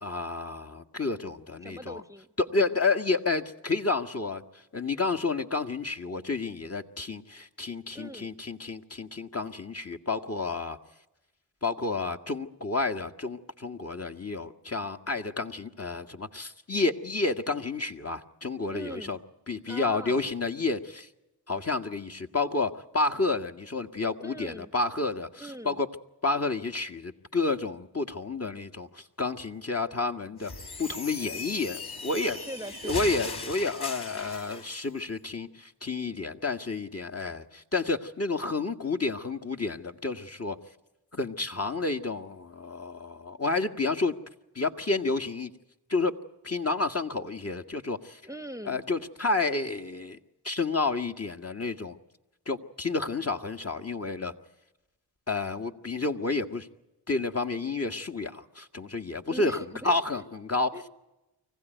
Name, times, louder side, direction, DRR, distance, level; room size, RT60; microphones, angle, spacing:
voice 1, 0.0-2.0 2.4-4.4 4.7-10.8 11.6-19.2 19.5-21.1 21.5-25.9 26.2-30.5 30.8-32.4 32.8-40.6 41.1-44.1 44.5-45.5 45.9-46.2 46.4-48.2 48.6-50.2 50.4-52.0 52.4-54.3 55.3-56.7 57.1-59.6 59.8-60.7, left 3 dB, 30° left, 5 dB, 1.6 m, -30 dB
voice 2, 1.6-2.3 7.9-8.3 18.7-19.2 19.7-20.3 24.2-24.7 25.4-25.8 32.3-33.2 48.2-48.8 59.3-60.2 60.7-60.9, right 1 dB, 5° right, 11 dB, 1.2 m, -42 dB
sound 1, 30.4-34.8, left 3 dB, 50° left, 3.7 m, -38 dB
25.0 x 15.5 x 9.2 m, 0.97 s
supercardioid pair, 40°, 48 cm